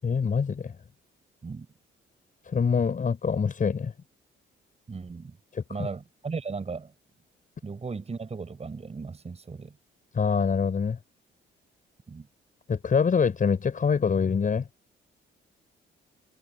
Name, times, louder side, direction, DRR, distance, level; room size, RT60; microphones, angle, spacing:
voice 1, 0.0-0.7 2.4-3.9 5.5-5.9 10.1-11.0 12.7-14.7, left 6 dB, 40° left, 6.1 m, -25 dB
voice 2, 4.9-5.4 5.7-6.9 7.6-9.8 12.1-12.3, right 4 dB, 30° right, 6.4 m, -36 dB
cardioid pair, 90°, 20 cm